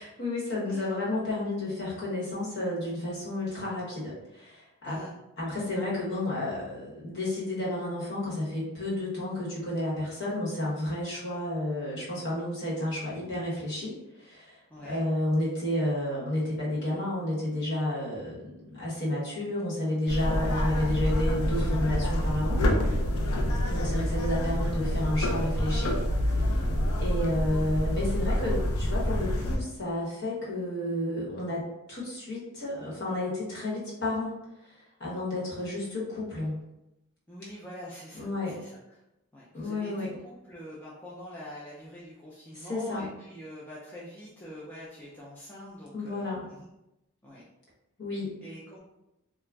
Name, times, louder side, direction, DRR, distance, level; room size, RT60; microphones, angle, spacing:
voice 1, 0.0-5.0 5.4-22.6 23.7-26.0 26.3-26.6 27.0-34.4 34.6-34.7 35.0-36.6 38.1-38.6 39.5-40.1 42.5-43.1 45.9-46.4 48.0-48.3, left 1 dB, 50° left, -6 dB, 1.0 m, -31 dB
voice 2, 14.7-15.0 20.3-20.5 23.4-23.7 26.8-27.0 37.3-39.0 39.3-46.6 47.2-47.4 48.4-48.8, equal, 10° left, -7 dB, 0.3 m, -45 dB
sound 1, 20.1-29.6, equal, 75° left, 0.4 m, -27 dB
2.4 x 2.1 x 3.3 m, 0.90 s
head